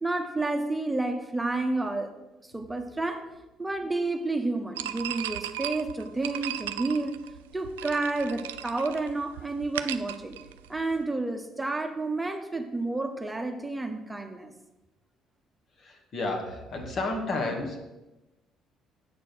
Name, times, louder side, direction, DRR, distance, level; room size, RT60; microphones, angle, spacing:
voice 1, 0.0-2.1 2.4-3.3 3.6-7.2 7.5-10.4 10.7-14.5, right 2 dB, 15° right, 6 dB, 1.0 m, -30 dB
sound 1, 4.8-11.0, right 12 dB, 90° right, 0.3 m, -37 dB
voice 2, 15.8-17.8, left 2 dB, 50° left, 2 dB, 2.0 m, -31 dB
7.7 x 6.6 x 6.2 m, 1.0 s
hypercardioid pair, 55°, 0 cm